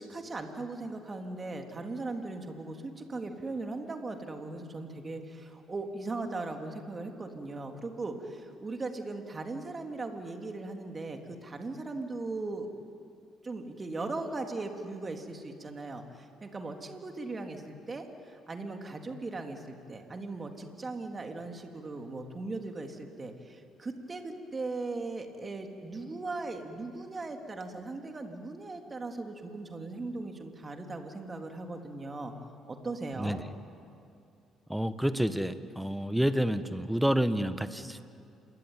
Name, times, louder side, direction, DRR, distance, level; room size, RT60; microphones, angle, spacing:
voice 1, 0.0-12.7 13.4-32.3 32.7-33.4, right 3 dB, 30° right, 4 dB, 3.4 m, -38 dB
voice 2, 34.7-38.1, equal, 5° right, 12 dB, 1.5 m, -29 dB
27.5 x 22.0 x 9.2 m, 2.5 s
hypercardioid pair, 50°, 0 cm